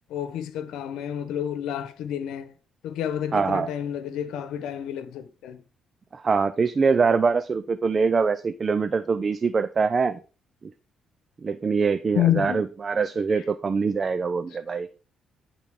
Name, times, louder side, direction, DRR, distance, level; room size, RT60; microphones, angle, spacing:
voice 1, 0.1-2.5 2.8-5.6 12.1-12.6, left 10 dB, 90° left, 0.9 m, -29 dB
voice 2, 3.3-3.7 6.1-10.2 11.4-14.9, right 5 dB, 40° right, 0.4 m, -23 dB
10.5 x 3.9 x 4.9 m
cardioid pair, 90°, 0 cm